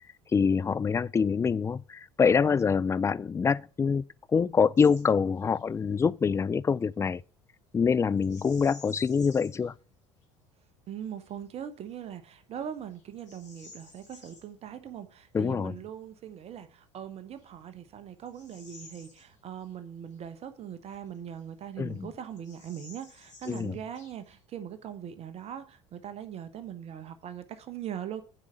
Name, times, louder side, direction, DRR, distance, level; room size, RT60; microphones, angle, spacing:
voice 1, 0.3-4.0 4.3-7.2 7.7-9.7 15.3-15.7 21.8-22.1 23.5-23.7, left 6 dB, 20° left, 0.4 m, -25 dB
Bird vocalization bird call bird song, 4.8-5.1 5.4-5.6 8.2-9.7 10.2-10.3 10.9-11.3 11.9-12.0 12.6-14.5 16.6-16.7 17.3-19.8 20.1-20.2 20.9-21.7 21.9-22.0 22.3-24.4, left 3 dB, 80° left, 2.4 m, -53 dB
voice 2, 10.9-28.2, right 9 dB, 40° right, 1.2 m, -41 dB
9.0 x 5.0 x 5.6 m
figure-of-eight pair, 65°, 15 cm